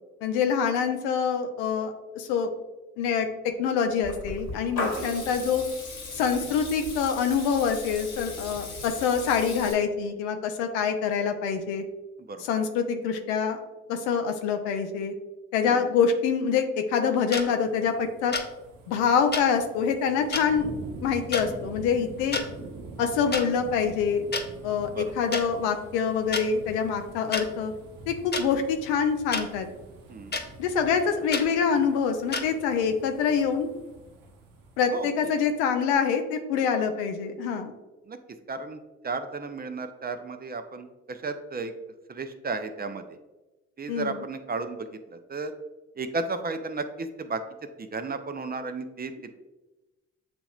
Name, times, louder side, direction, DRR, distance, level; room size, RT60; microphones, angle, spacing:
voice 1, 0.2-2.5 3.0-3.3 3.6-5.6 6.1-11.8 12.4-13.6 13.9-15.1 15.5-18.4 18.9-20.7 21.0-22.4 23.0-24.2 24.6-27.7 28.1-29.7 30.6-33.7 34.8-37.7 43.9-44.2, left 6 dB, 80° left, 6 dB, 0.6 m, -25 dB
Water tap faucet / Liquid, 4.0-9.7, left 3 dB, 55° left, 1.3 m, -37 dB
voice 2, 4.8-5.2 8.4-8.5 12.2-12.4 15.6-15.8 24.9-25.1 30.1-30.4 34.9-35.1 38.1-38.2 38.5-41.7 42.1-43.0 43.8-45.5 46.0-47.4 47.8-49.3, right 3 dB, 25° right, 8 dB, 0.5 m, -34 dB
sound 1, 17.3-17.4 18.3-18.5 19.3-19.4 20.3-20.4 21.3-21.5 22.2-22.5 23.3-23.4 24.3-24.4 25.3-25.4 26.3-26.4 27.3-27.4 28.3-28.5 29.3-29.5 30.3-30.4 31.3-31.5 32.3-32.4, left 3 dB, 30° left, 0.7 m, -29 dB
sound 2, 17.4-35.5 35.9-36.0, right 2 dB, 70° right, 0.8 m, -46 dB
7.6 x 2.9 x 2.4 m, 1.1 s
hypercardioid pair, 45°, 35 cm